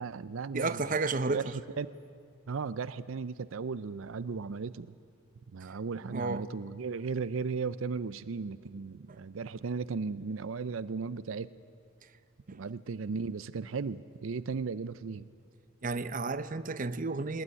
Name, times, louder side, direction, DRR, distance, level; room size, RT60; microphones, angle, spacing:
voice 1, 0.0-0.8 1.3-1.9 2.5-4.9 5.5-11.5 12.5-15.3, right 5 dB, 90° right, 0.5 m, -36 dB
voice 2, 0.5-1.4 6.1-6.4 12.5-12.6 15.8-17.4, right 3 dB, 40° right, 0.8 m, -32 dB
20.0 x 19.5 x 9.7 m
head